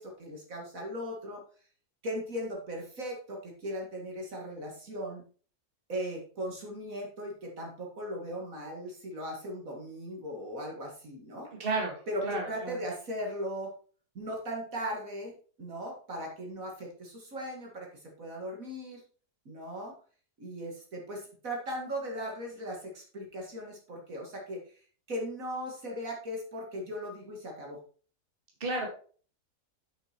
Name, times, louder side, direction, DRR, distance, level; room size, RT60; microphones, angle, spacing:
voice 1, 0.0-1.4 2.0-5.2 5.9-11.5 12.1-13.7 14.1-19.0 19.5-20.0 20.4-24.6 25.1-27.8, equal, 55° right, 0 dB, 2.4 m, -38 dB
voice 2, 11.6-12.8 28.6-28.9, right 3 dB, 35° right, 1 dB, 2.1 m, -32 dB
8.2 x 6.2 x 4.4 m, 0.41 s
omnidirectional pair, 1.7 m